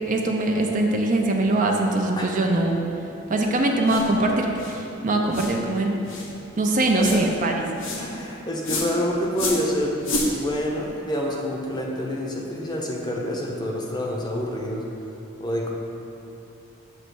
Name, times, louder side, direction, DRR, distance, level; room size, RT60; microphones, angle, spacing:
voice 1, 0.1-2.7 3.3-6.0 6.6-7.9, right 2 dB, 40° right, 1 dB, 0.5 m, -22 dB
voice 2, 2.1-2.8 7.0-7.2 8.0-10.0 10.3-14.8 15.4-15.7, equal, 20° left, -1 dB, 0.7 m, -28 dB
sound 1, 3.9-4.1 4.6-4.8 5.3-5.6 6.1-6.3 7.0-7.3 7.8-8.1 8.6-8.9 9.4-9.7 10.0-10.3, left 2 dB, 65° left, 0.9 m, -28 dB
7.7 x 3.0 x 6.1 m, 2.9 s
head